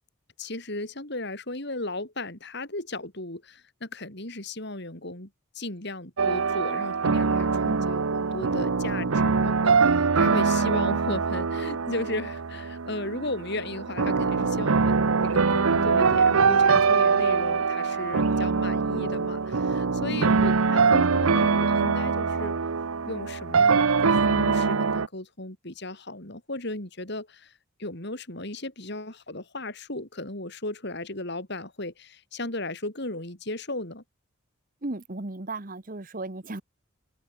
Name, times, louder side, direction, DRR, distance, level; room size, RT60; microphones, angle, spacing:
voice 1, 0.4-22.6 23.0-27.5 27.8-34.0, left 2 dB, 55° left, 4.1 m, -36 dB
sound 1, 6.2-25.1, right 5 dB, 85° right, 0.8 m, -23 dB
voice 2, 7.5-7.9 20.1-20.5 34.8-36.6, right 2 dB, 40° right, 1.2 m, -35 dB
open air
head